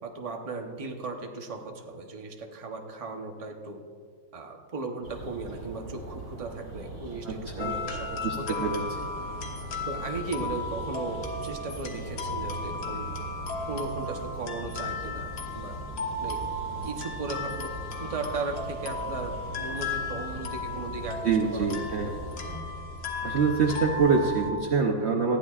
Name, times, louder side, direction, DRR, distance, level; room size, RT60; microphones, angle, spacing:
voice 1, 0.0-3.9 4.3-8.7 9.9-13.1 13.7-15.7 16.2-16.4 16.8-17.7 18.0-21.2 21.5-22.1, right 3 dB, 35° right, 2 dB, 0.6 m, -36 dB
sound 1, 5.0-22.6, right 2 dB, 55° right, 4.5 m, -41 dB
voice 2, 7.2-7.7 8.2-8.8 21.2-22.1 23.2-25.4, right 5 dB, 80° right, 2 dB, 0.6 m, -25 dB
Music box, 7.6-24.5, left 3 dB, 70° left, 2.0 m, -35 dB
19.5 x 14.0 x 2.4 m, 2.1 s
omnidirectional pair, 2.2 m